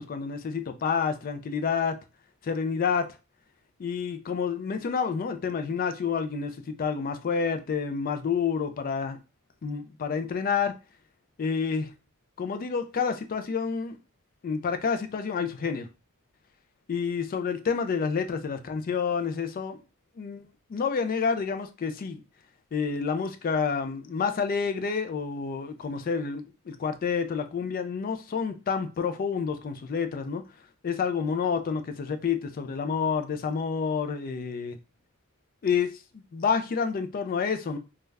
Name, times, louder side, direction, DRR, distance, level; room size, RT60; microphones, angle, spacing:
voice 1, 0.0-2.0 2.4-3.1 3.8-9.2 9.6-10.7 11.4-11.9 12.4-14.0 14.4-15.9 16.9-19.8 20.2-22.2 22.7-30.4 30.8-34.8 35.6-37.8, left 6 dB, 40° left, 0.3 m, -29 dB
2.3 x 2.1 x 3.2 m
head